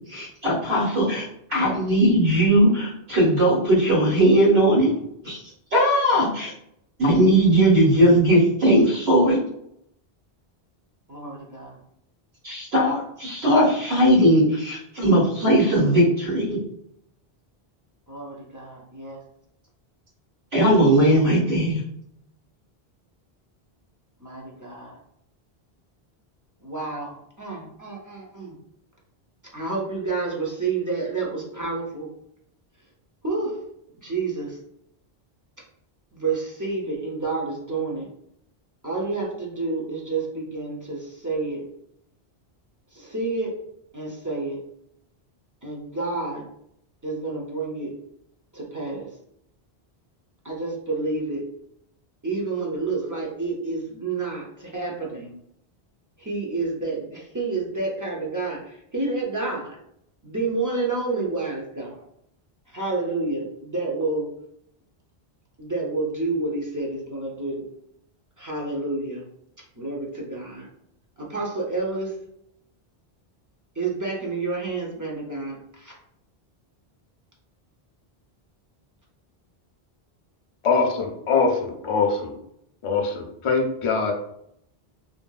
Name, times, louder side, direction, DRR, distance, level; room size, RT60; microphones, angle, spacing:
voice 1, 0.1-4.9 5.2-5.4 5.7-6.5 7.0-9.4 12.4-16.6 20.5-21.8, right 1 dB, 85° right, -8 dB, 1.7 m, -19 dB
voice 2, 11.1-11.8 18.1-19.2 24.2-25.0 26.6-28.5 29.5-32.1 33.2-33.6 34.0-34.6 36.1-38.1 38.8-41.6 42.9-43.5 43.9-44.6 45.6-46.4 47.0-47.9 48.5-49.1 50.4-51.4 52.2-55.3 56.2-59.8 60.2-62.0 62.7-64.2 65.6-67.6 68.4-69.2 69.8-70.7 71.2-72.1 73.8-75.9, right 3 dB, 25° right, -3 dB, 0.4 m, -29 dB
voice 3, 80.6-82.4 82.8-84.1, left 4 dB, 45° left, 1 dB, 0.4 m, -23 dB
2.6 x 2.6 x 2.3 m, 0.74 s
omnidirectional pair, 1.1 m